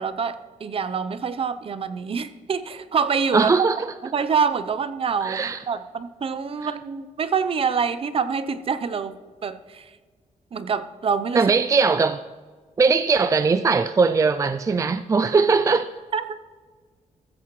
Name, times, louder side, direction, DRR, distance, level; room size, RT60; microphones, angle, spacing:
voice 1, 0.0-3.5 4.0-9.2 9.4-9.9 10.5-11.5 16.1-16.4, right 6 dB, 45° right, 0.7 m, -26 dB
voice 2, 3.3-3.9 5.2-5.6 6.6-6.7 11.3-12.2 12.8-15.9, right 4 dB, 25° right, 0.4 m, -20 dB
15.0 x 13.5 x 3.2 m
cardioid pair, 110°, 13 cm